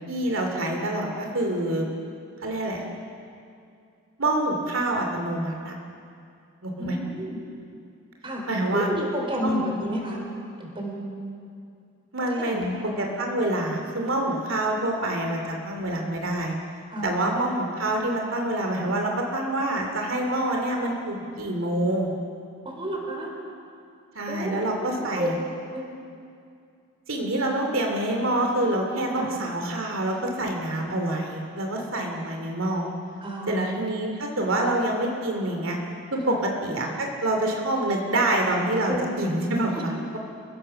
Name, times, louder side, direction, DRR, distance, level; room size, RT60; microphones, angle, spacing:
voice 1, 0.1-1.9 2.4-2.8 4.2-5.8 6.6-7.0 8.5-8.9 9.4-9.6 12.1-12.7 13.0-16.5 17.0-22.1 24.1-25.4 27.1-32.9 33.5-35.8 36.1-40.2, right 1 dB, 75° right, 1 dB, 2.6 m, -26 dB
voice 2, 6.8-7.4 8.2-8.4 8.7-10.2 10.6-11.0 12.3-12.9 16.9-17.2 22.6-23.3 24.3-24.6 25.0-25.3 25.7-25.8 29.1-29.3 33.2-33.7 36.2-36.4 38.9-39.1, equal, 25° right, -1 dB, 4.3 m, -30 dB
30.0 x 16.0 x 6.6 m, 2.4 s
head